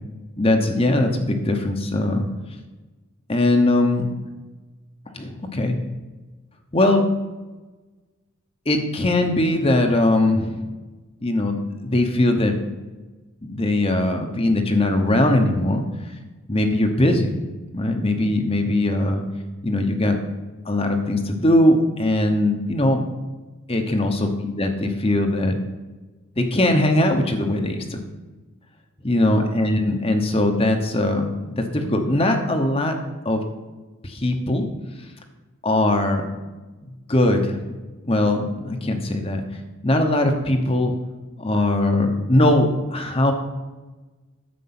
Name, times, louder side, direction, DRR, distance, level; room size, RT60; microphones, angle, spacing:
voice 1, 0.4-2.3 3.3-4.1 5.1-5.8 6.7-7.0 8.7-10.6 11.2-12.6 13.4-15.8 16.5-17.4 17.7-19.2 19.6-20.2 20.6-23.0 23.7-25.6 26.4-28.0 29.0-33.0 33.2-33.4 34.0-34.7 35.6-36.2 36.8-37.6 38.0-39.4 39.8-40.9 41.4-43.3, left 1 dB, 25° left, 5 dB, 1.0 m, -20 dB
9.4 x 7.5 x 5.9 m, 1.2 s
head